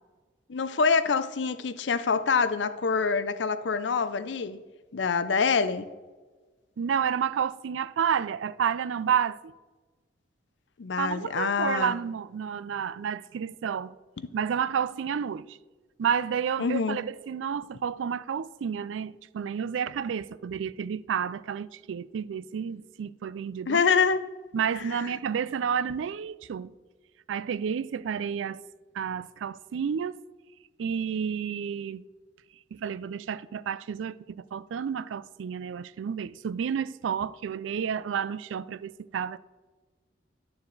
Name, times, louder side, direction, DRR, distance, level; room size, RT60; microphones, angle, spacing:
voice 1, 0.5-4.6 4.9-5.9 10.8-11.9 16.6-17.0 23.7-24.3, left 5 dB, 70° left, 0.5 m, -25 dB
voice 2, 6.8-9.5 11.0-13.9 14.3-15.6 16.0-23.8 24.5-26.7 27.3-28.6 28.9-30.2 30.8-32.0 32.7-39.4, right 7 dB, 90° right, 0.4 m, -30 dB
11.5 x 6.8 x 4.0 m
head